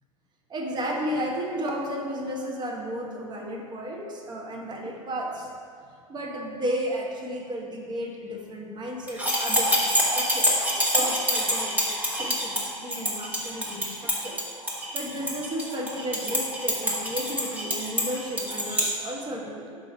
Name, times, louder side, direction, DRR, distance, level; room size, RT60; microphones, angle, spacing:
voice 1, 0.5-5.5 6.1-14.4 14.7-19.8, equal, 25° right, 0 dB, 1.1 m, -33 dB
sound 1, 9.1-18.9, equal, 10° right, 1.4 m, -26 dB
6.3 x 4.1 x 5.2 m, 2.2 s
figure-of-eight pair, 80°, 18 cm